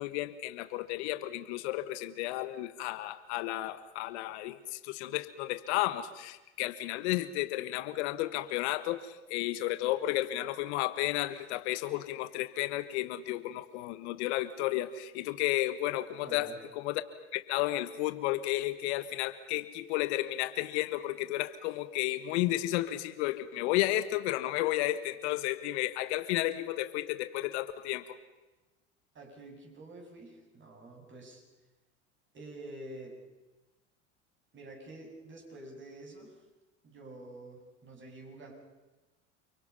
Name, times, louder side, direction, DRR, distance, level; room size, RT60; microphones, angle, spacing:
voice 1, 0.0-16.5 16.8-17.0 17.3-28.2, left 16 dB, 70° left, 12 dB, 1.3 m, -32 dB
voice 2, 16.2-16.6 29.1-31.4 32.3-33.2 34.5-36.5 36.8-38.5, right 2 dB, 35° right, 0 dB, 7.9 m, -48 dB
30.0 x 23.5 x 5.6 m, 1.1 s
hypercardioid pair, 80°, 35 cm